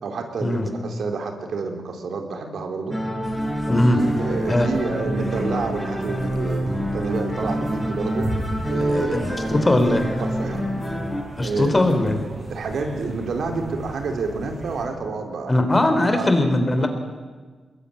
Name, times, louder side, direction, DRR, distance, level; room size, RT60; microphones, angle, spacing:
voice 1, 0.0-3.0 4.0-8.3 8.7-9.7 10.2-10.7 11.4-11.8 12.5-15.5 16.1-16.5 16.8-16.9, right 4 dB, 75° right, 4 dB, 3.9 m, -29 dB
sound 1, 2.9-11.2, equal, ahead, 5.1 m, -27 dB
sound 2, 3.2-14.9, right 1 dB, 35° right, 6.8 m, -35 dB
voice 2, 3.7-4.0 4.4-4.7 8.9-10.0 11.4-12.2 15.5-16.9, left 1 dB, 20° left, 7 dB, 3.7 m, -20 dB
22.5 x 21.0 x 9.9 m, 1.4 s
cardioid pair, 95°, 0 cm